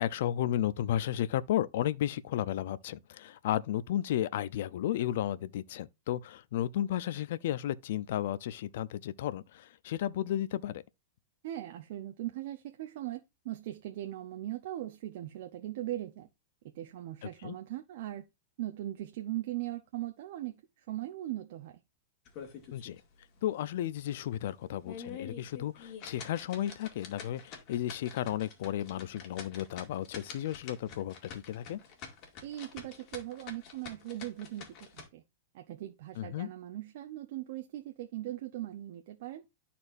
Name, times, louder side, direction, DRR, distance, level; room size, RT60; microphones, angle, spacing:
voice 1, 0.0-10.8 17.4-17.5 22.7-23.0 23.4-31.8 36.2-36.5, left 12 dB, 65° left, 0.5 m, -33 dB
voice 2, 11.4-16.3 16.7-18.2 18.6-21.8 32.4-35.2 35.5-39.4, right 14 dB, 60° right, 0.8 m, -39 dB
sound 1, 22.3-23.0 23.4-23.5 24.0-24.1 24.7-35.1, left 6 dB, 40° left, 2.1 m, -47 dB
12.5 x 4.3 x 2.6 m
supercardioid pair, 150°, 0 cm